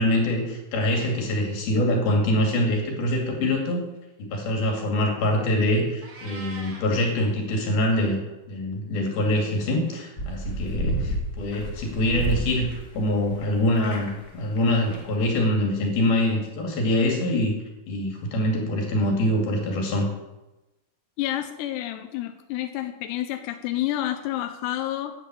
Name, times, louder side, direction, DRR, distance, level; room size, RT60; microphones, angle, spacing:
voice 1, 0.0-3.8 4.2-8.2 8.5-17.5 17.9-20.1, left 1 dB, 65° left, 2 dB, 4.1 m, -24 dB
Meow, 6.0-6.9, right 3 dB, 50° right, 3.4 m, -41 dB
sound 1, 10.2-13.5 13.7-14.3 14.6-14.7 14.9-15.0, right 1 dB, 30° left, 1.8 m, -30 dB
voice 2, 21.2-25.1, left 13 dB, 90° left, 7 dB, 2.9 m, -29 dB
10.0 x 9.2 x 8.2 m, 1.0 s
omnidirectional pair, 4.7 m